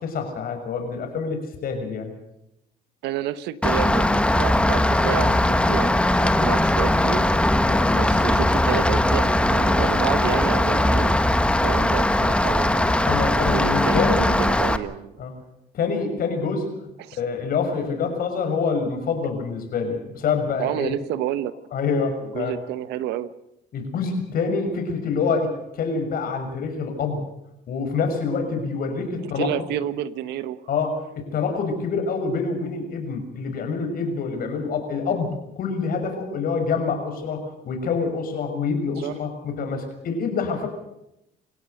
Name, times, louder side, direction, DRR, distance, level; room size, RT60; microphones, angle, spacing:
voice 1, 0.0-2.1 7.6-7.9 13.1-14.3 15.2-15.3 15.7-16.7 17.2-20.9 21.7-22.6 23.7-27.2 27.7-29.5 30.7-40.7, left 5 dB, 60° left, 5 dB, 6.3 m, -26 dB
voice 2, 3.0-7.3 7.6-11.2 11.6-13.0 13.4-15.2 17.0-17.2 20.6-21.5 22.2-23.3 29.2-30.7 39.0-39.2, right 12 dB, 85° right, 14 dB, 1.2 m, -30 dB
Rain, 3.6-14.8, left 1 dB, 5° left, 1.3 m, -20 dB
27.5 x 16.0 x 6.6 m, 0.82 s
cardioid pair, 110°, 17 cm